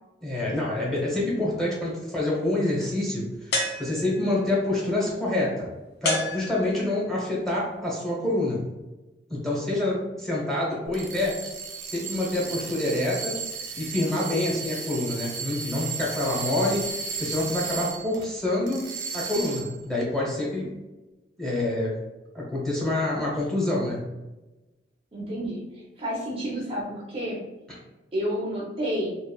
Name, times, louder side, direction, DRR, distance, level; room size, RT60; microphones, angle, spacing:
voice 1, 0.2-5.7 6.0-8.6 9.3-11.4 11.8-13.4 13.8-16.9 17.2-18.8 19.1-20.7 21.4-21.9 22.3-24.0, left 1 dB, ahead, -5 dB, 0.8 m, -27 dB
sound 1, 3.5-4.4 6.0-7.0, left 1 dB, 60° left, 0.5 m, -29 dB
sound 2, 10.9-18.3 18.7-19.8, right 5 dB, 80° right, 0.5 m, -35 dB
voice 2, 25.1-25.6 26.0-27.4 28.1-29.1, equal, 30° right, -4 dB, 0.5 m, -30 dB
3.0 x 2.4 x 2.2 m, 1.1 s
head